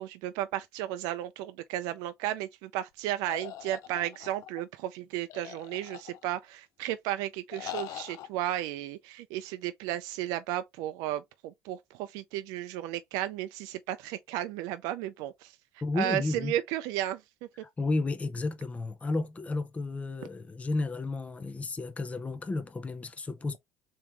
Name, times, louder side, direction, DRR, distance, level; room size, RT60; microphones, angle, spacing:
voice 1, 0.0-15.6 15.9-17.2, right 13 dB, 80° right, 0.4 m, -34 dB
sound 1, 3.3-4.6 5.3-6.4 7.5-8.3, left 12 dB, 65° left, 0.5 m, -42 dB
voice 2, 15.8-16.6 17.8-23.6, left 3 dB, 20° left, 0.6 m, -32 dB
3.5 x 3.0 x 3.3 m
supercardioid pair, 85°, 6 cm